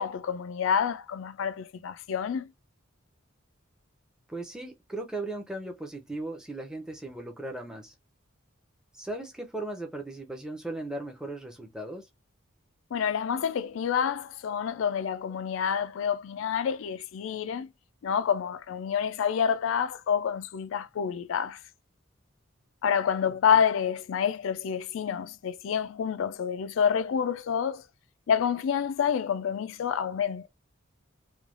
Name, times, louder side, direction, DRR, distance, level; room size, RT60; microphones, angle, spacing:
voice 1, 0.0-2.5 12.9-17.7 18.0-21.6 22.8-27.8 28.3-30.5, left 7 dB, 70° left, 0.3 m, -28 dB
voice 2, 4.3-7.9 8.9-12.1, right 2 dB, 5° right, 0.6 m, -37 dB
3.2 x 2.3 x 2.4 m
head